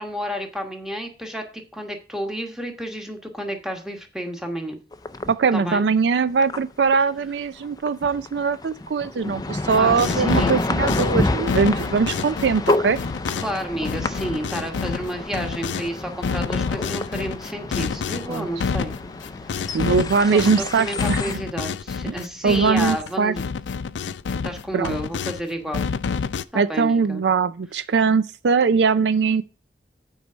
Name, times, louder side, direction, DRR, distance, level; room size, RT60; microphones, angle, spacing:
voice 1, 0.0-1.4 1.7-4.8 5.5-5.8 9.8-10.7 13.4-18.9 19.4-19.8 20.3-23.4 24.4-25.8 26.5-27.2, equal, 5° right, 1.3 m, -31 dB
sound 1, 4.9-5.3 6.0-6.1 6.4-6.6 6.9-7.1 7.6-21.3, left 2 dB, 20° left, 0.4 m, -29 dB
voice 2, 5.3-13.0 18.3-18.5 19.7-21.4 22.1-22.2 22.4-23.3 24.7-25.0 26.5-29.4, right 5 dB, 70° right, 0.4 m, -21 dB
sound 2, 9.7-15.9 16.2-23.1 23.4-25.4 25.7-26.4, left 5 dB, 90° left, 0.4 m, -28 dB
8.3 x 4.7 x 6.2 m
head